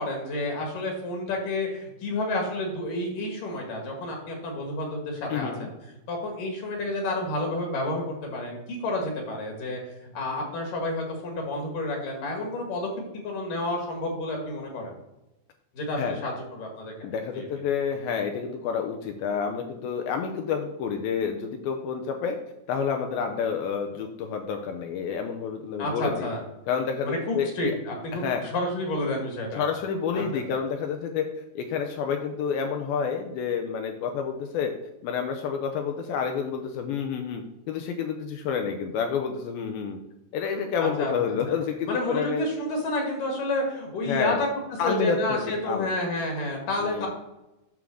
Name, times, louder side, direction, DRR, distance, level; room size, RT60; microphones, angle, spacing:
voice 1, 0.0-5.7 6.1-14.9 15.7-17.1 17.3-17.5 25.8-26.4 27.0-29.6 30.1-30.6 40.8-41.1 41.5-41.6 41.9-47.1, left 1 dB, 65° left, 1 dB, 2.9 m, -30 dB
voice 2, 5.3-5.7 16.0-16.3 17.0-22.4 22.7-26.3 26.7-27.7 28.1-28.4 29.6-31.3 31.6-34.7 35.0-40.0 40.3-42.5 44.1-44.4 44.8-45.9 46.8-47.1, left 6 dB, 80° left, 4 dB, 2.5 m, -29 dB
9.1 x 3.7 x 6.3 m, 0.97 s
omnidirectional pair, 4.3 m